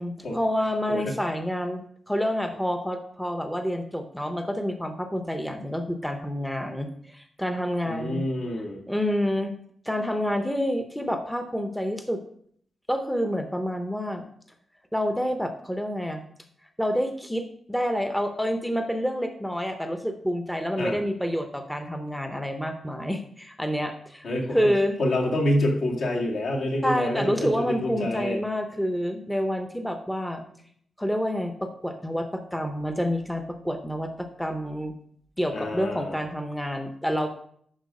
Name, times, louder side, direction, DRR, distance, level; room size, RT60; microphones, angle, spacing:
voice 1, 0.0-8.2 8.9-9.5 9.8-12.2 12.9-14.3 14.9-16.2 16.8-24.3 24.5-24.9 26.8-30.4 31.0-34.9 35.4-37.3, equal, ahead, 6 dB, 0.6 m, -28 dB
voice 2, 7.8-8.8 20.8-21.0 24.2-24.6 25.0-28.4 35.5-36.2, left 1 dB, 75° left, -2 dB, 2.2 m, -27 dB
11.0 x 4.5 x 5.2 m, 0.63 s
wide cardioid pair, 175°, 0 cm